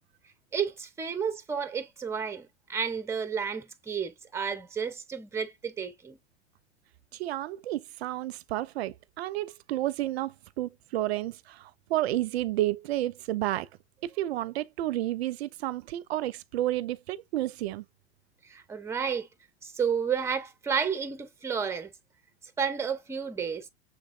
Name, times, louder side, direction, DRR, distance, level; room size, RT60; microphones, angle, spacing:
voice 1, 0.5-6.2 18.5-19.3 19.6-21.9 22.6-23.7, right 6 dB, 10° right, 0.6 m, -31 dB
voice 2, 7.1-13.7 14.0-17.8, right 15 dB, 60° right, 0.4 m, -31 dB
6.3 x 3.5 x 2.3 m
hypercardioid pair, 95°, 35 cm